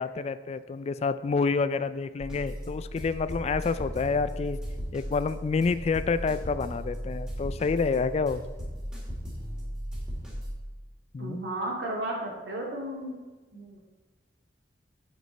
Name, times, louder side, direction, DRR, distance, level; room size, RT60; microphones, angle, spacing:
voice 1, 0.0-4.6 4.9-8.4 11.1-11.4, left 4 dB, 35° left, 14 dB, 0.3 m, -28 dB
sound 1, 2.2-10.5, equal, 5° right, 2.2 m, -37 dB
voice 2, 11.2-13.2 13.5-13.8, right 1 dB, 85° right, -2 dB, 2.1 m, -34 dB
8.3 x 6.2 x 4.4 m, 1.3 s
head